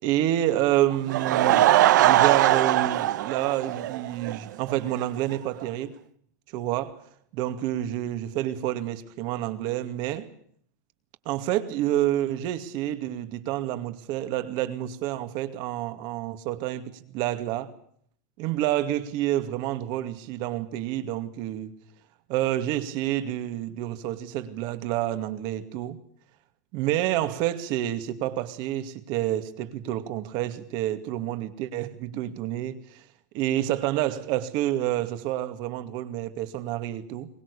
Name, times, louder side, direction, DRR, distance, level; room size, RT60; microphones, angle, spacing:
voice 1, 0.0-5.9 6.5-7.0 7.3-10.3 11.3-17.7 18.4-21.7 22.3-26.0 26.7-33.0 33.3-37.3, right 13 dB, 50° right, 2.4 m, -28 dB
Laughter / Crowd, 0.9-4.4 4.7-4.8 5.3-5.4 5.6-5.7, right 14 dB, 80° right, 1.2 m, -21 dB
23.0 x 20.0 x 8.5 m
supercardioid pair, 140°, 10 cm